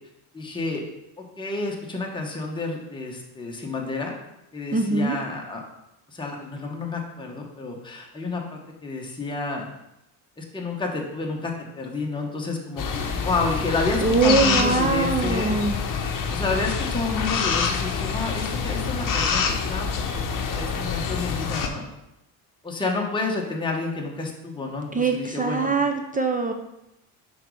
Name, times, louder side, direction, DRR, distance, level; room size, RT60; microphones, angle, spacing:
voice 1, 0.3-0.8 1.2-4.1 4.5-5.6 6.1-9.6 10.4-15.6 16.0-20.2 20.5-21.9 22.6-25.7, left 3 dB, 10° left, -1 dB, 1.2 m, -30 dB
voice 2, 4.7-5.2 14.0-15.8 24.9-26.5, right 3 dB, 20° right, 4 dB, 0.5 m, -22 dB
sound 1, 12.8-21.7, left 5 dB, 45° left, 1.0 m, -26 dB
5.7 x 4.1 x 4.8 m, 0.90 s
supercardioid pair, 90°, 47 cm